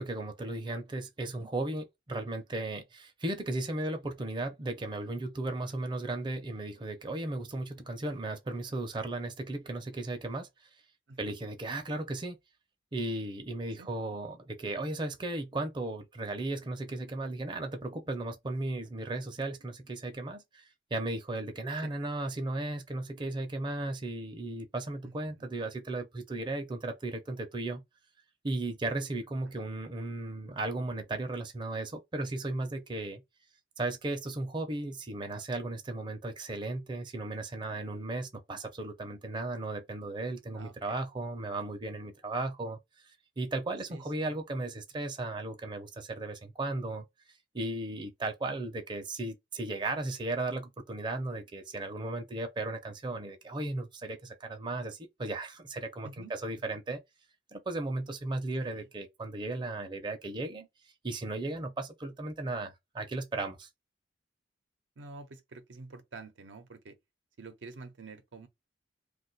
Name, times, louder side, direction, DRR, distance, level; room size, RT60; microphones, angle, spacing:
voice 1, 0.0-10.5 11.2-12.4 12.9-20.6 20.9-27.8 28.4-33.2 33.8-42.8 43.4-47.0 47.5-57.0 57.5-60.7 61.0-63.7, right 2 dB, 25° right, 0.5 m, -35 dB
voice 2, 25.0-25.5 29.4-29.6 40.5-41.0 43.9-44.4 56.0-56.3 58.6-58.9 62.5-62.6 65.0-67.0 67.4-68.5, right 3 dB, 85° right, 0.6 m, -49 dB
2.4 x 2.3 x 3.9 m
head